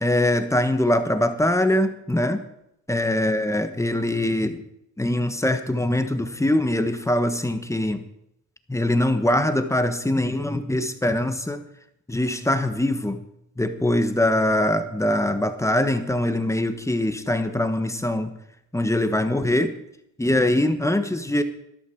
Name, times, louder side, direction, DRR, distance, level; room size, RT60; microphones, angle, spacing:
voice 1, 0.0-2.4 2.9-4.6 5.0-8.0 8.7-11.6 12.1-13.2 13.6-18.3 18.7-19.8 20.2-21.4, left 1 dB, 10° left, 8 dB, 1.3 m, -22 dB
13.0 x 12.0 x 4.8 m, 0.80 s
cardioid pair, 80°, 32 cm